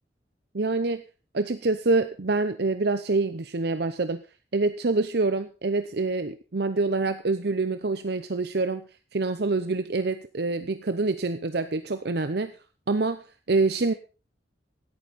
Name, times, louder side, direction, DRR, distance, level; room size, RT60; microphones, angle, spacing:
voice 1, 0.5-1.0 1.3-4.2 4.5-8.8 9.1-12.5 12.9-13.2 13.5-13.9, right 3 dB, 60° right, 11 dB, 0.7 m, -26 dB
16.5 x 11.5 x 4.1 m, 0.34 s
head